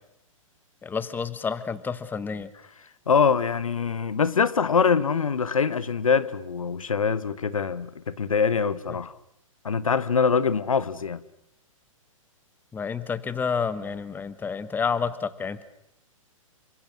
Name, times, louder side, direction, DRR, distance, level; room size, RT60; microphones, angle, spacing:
voice 1, 0.8-2.5 8.9-9.0 12.7-15.6, left 5 dB, 10° left, 1.2 m, -29 dB
voice 2, 3.1-9.1 9.6-11.2, left 6 dB, 75° left, 1.2 m, -24 dB
28.5 x 25.5 x 6.3 m
figure-of-eight pair, 115°, 18 cm